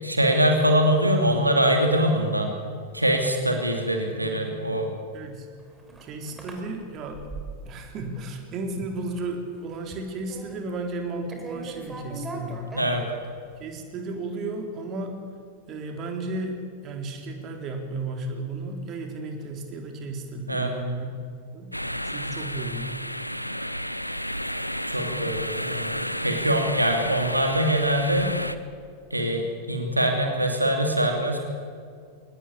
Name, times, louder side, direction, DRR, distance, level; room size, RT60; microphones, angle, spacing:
voice 1, 0.0-2.6 2.9-4.9 12.7-13.0 20.5-20.7 24.9-25.9 26.2-28.3 29.1-31.4, right 1 dB, 85° right, 3 dB, 2.8 m, -23 dB
voice 2, 5.1-5.5 6.0-7.2 7.6-12.7 13.6-15.2 15.7-21.1 21.5-21.7 22.0-22.9, right 2 dB, 35° right, 3 dB, 3.9 m, -34 dB
sound 1, 5.4-7.9 8.2-8.7 9.0-9.3 9.6-11.0 11.3-13.6, right 3 dB, 10° right, 4.8 m, -40 dB
sound 2, 21.7-28.6, equal, 90° left, 0.9 m, -31 dB
23.0 x 19.5 x 8.7 m, 2.1 s
figure-of-eight pair, 90°, 0 cm